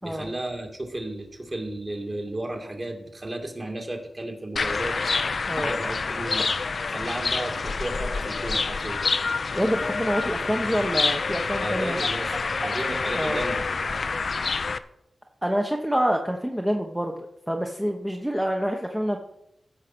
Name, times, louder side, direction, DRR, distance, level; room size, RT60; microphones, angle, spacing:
voice 1, 0.0-5.0 5.6-6.5 6.9-9.0 11.6-14.0, right 1 dB, 30° right, 2 dB, 2.5 m, -34 dB
sound 1, 4.6-14.8, left 4 dB, 60° left, 0.6 m, -27 dB
voice 2, 9.5-12.0 13.1-13.4 15.4-17.2 17.5-19.2, equal, 10° right, 2 dB, 1.0 m, -26 dB
15.0 x 6.5 x 6.1 m, 0.82 s
wide cardioid pair, 100°, 0 cm